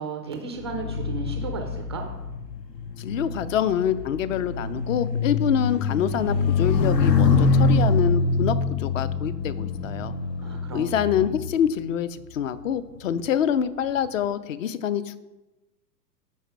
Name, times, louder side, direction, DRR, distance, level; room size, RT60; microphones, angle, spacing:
voice 1, 0.0-2.1 10.4-11.3, right 4 dB, 20° right, 3 dB, 0.3 m, -35 dB
sound 1, 0.6-12.2 13.0-13.3, left 4 dB, 75° left, 1.1 m, -25 dB
voice 2, 3.0-10.1 10.7-15.2, left 9 dB, 50° left, 14 dB, 0.7 m, -26 dB
12.0 x 4.2 x 4.5 m, 1.1 s
figure-of-eight pair, 110°, 50 cm